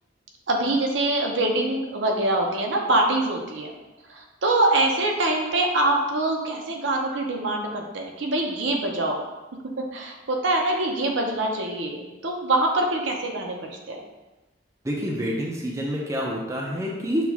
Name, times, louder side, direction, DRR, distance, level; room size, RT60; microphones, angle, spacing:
voice 1, 0.5-3.7 4.1-9.2 9.8-13.6 13.9-14.0, right 2 dB, 75° right, 1 dB, 0.7 m, -24 dB
voice 2, 14.8-17.3, equal, 15° right, -2 dB, 0.5 m, -27 dB
6.0 x 2.4 x 3.5 m, 1.1 s
head